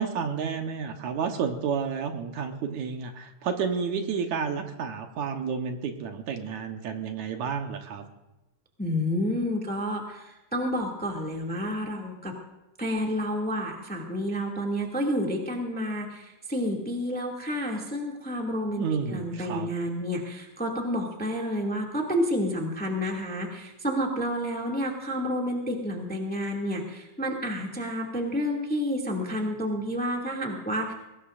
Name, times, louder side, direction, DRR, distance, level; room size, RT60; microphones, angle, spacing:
voice 1, 0.0-8.0 18.8-19.7, right 6 dB, 70° right, 5 dB, 2.4 m, -31 dB
voice 2, 8.8-10.2 10.5-12.3 12.8-30.9, equal, 5° left, -1 dB, 1.6 m, -30 dB
22.0 x 19.0 x 2.6 m, 1.0 s
omnidirectional pair, 3.5 m